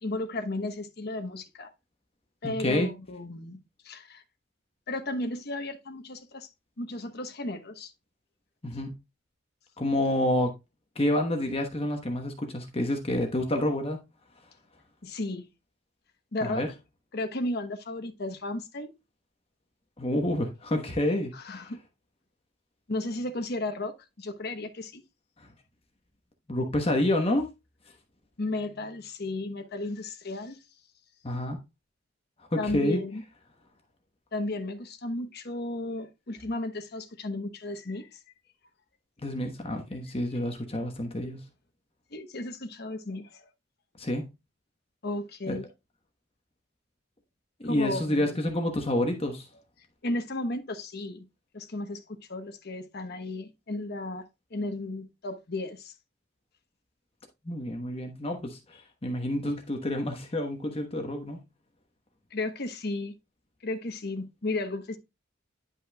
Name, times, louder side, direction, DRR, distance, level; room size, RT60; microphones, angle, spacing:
voice 1, 0.0-1.7 2.4-4.2 4.9-6.5 6.8-7.9 15.0-15.5 16.3-16.7 17.1-18.9 21.3-21.8 22.9-25.0 28.4-30.6 32.6-33.2 34.3-38.2 42.1-43.5 45.0-45.7 47.6-48.4 50.0-51.3 51.5-52.0 52.3-54.2 54.5-55.9 62.3-63.1 63.6-65.0, left 2 dB, 50° left, 1.1 m, -34 dB
voice 2, 2.4-2.9 8.6-9.0 9.8-10.5 10.9-14.0 16.4-16.7 20.0-21.7 26.5-27.5 31.2-31.6 32.5-33.0 39.2-41.4 44.0-44.3 45.5-45.6 47.6-49.5 57.4-61.4, left 1 dB, 30° left, 1.1 m, -28 dB
10.5 x 5.4 x 2.3 m
head